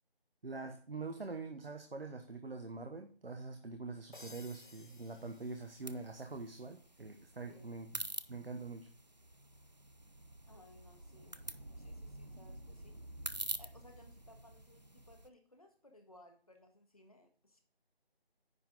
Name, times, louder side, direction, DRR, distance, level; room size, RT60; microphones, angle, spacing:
voice 1, 0.4-8.9, right 3 dB, 70° right, 6 dB, 1.1 m, -44 dB
sound 1, 4.1-6.2, left 3 dB, 55° left, 0.8 m, -57 dB
sound 2, 4.2-15.3, right 1 dB, 45° right, 0.4 m, -48 dB
voice 2, 7.5-7.9 10.5-11.4 11.8-13.0 13.5-17.6, left 1 dB, 35° left, 4 dB, 1.4 m, -62 dB
9.6 x 5.8 x 3.6 m, 0.43 s
figure-of-eight pair, 180°, 31 cm